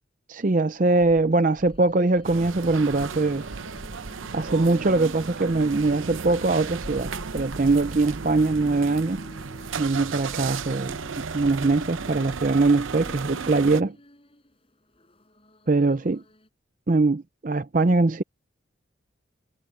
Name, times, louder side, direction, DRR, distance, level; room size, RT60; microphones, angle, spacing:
voice 1, 0.3-3.4 4.3-9.2 9.8-13.9 15.7-16.2 16.9-18.2, right 3 dB, 40° right, 0.6 m, -22 dB
Insect, 1.0-3.3 3.7-5.2 6.8-8.5, equal, 10° left, 4.9 m, -44 dB
sound 1, 1.5-16.5, equal, 30° left, 7.8 m, -50 dB
sound 2, 2.2-13.8, right 5 dB, 85° right, 0.7 m, -34 dB
head